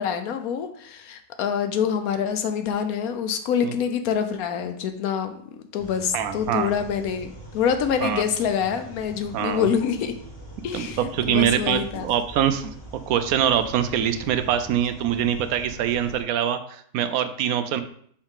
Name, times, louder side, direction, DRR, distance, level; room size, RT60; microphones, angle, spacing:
voice 1, 0.0-5.4 5.7-10.1 10.6-12.1, left 7 dB, 85° left, 8 dB, 1.2 m, -26 dB
sound 1, 5.8-16.2, right 1 dB, 20° left, 1.2 m, -42 dB
voice 2, 6.1-6.7 8.0-8.2 9.3-9.7 10.7-12.7 13.1-17.8, right 9 dB, 90° right, 10 dB, 1.1 m, -24 dB
5.4 x 4.7 x 3.7 m, 0.62 s
omnidirectional pair, 1.5 m